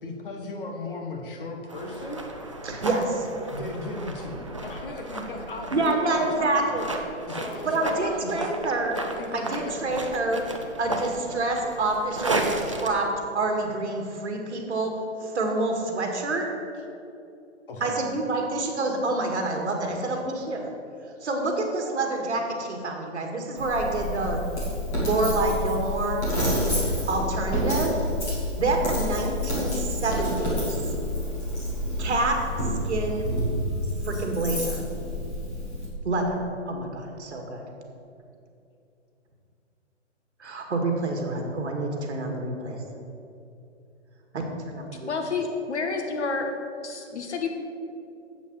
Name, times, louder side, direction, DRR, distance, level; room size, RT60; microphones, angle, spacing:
voice 1, 0.0-2.2 3.5-6.7 7.3-8.5 8.9-9.6 17.7-18.0 20.1-20.2 21.2-21.3, left 2 dB, 45° left, 2 dB, 1.5 m, -36 dB
sound 1, 1.7-12.9, right 2 dB, 25° right, 0.5 m, -34 dB
voice 2, 2.6-3.3 5.7-7.0 7.7-9.0 9.3-10.5 10.8-16.5 17.8-20.7 21.2-24.5 25.0-26.3 27.1-28.0 28.6-30.8 32.0-32.5 32.8-33.3 34.0-34.8 36.1-37.7 40.4-42.8 44.7-45.1, right 2 dB, 65° right, 2 dB, 2.0 m, -27 dB
Coin (dropping), 23.6-35.9, equal, 5° left, 1.0 m, -28 dB
voice 3, 45.1-46.5 46.8-47.5, left 4 dB, 65° left, 3 dB, 1.6 m, -29 dB
7.8 x 7.2 x 7.2 m, 2.7 s
hypercardioid pair, 175°, 36 cm